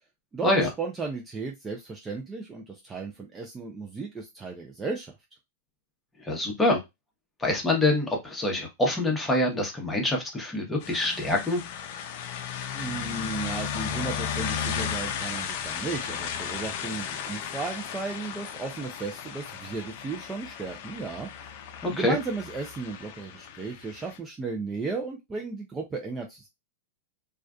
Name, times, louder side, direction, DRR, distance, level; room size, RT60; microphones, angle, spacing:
voice 1, 0.3-5.1 12.7-21.6 21.9-26.5, right 4 dB, 15° right, 0.4 m, -35 dB
voice 2, 6.2-6.8 7.4-11.6 21.8-22.2, left 2 dB, 10° left, 0.8 m, -25 dB
sound 1, 10.8-24.2, left 8 dB, 55° left, 0.5 m, -35 dB
2.4 x 2.3 x 2.3 m
hypercardioid pair, 135°, 0 cm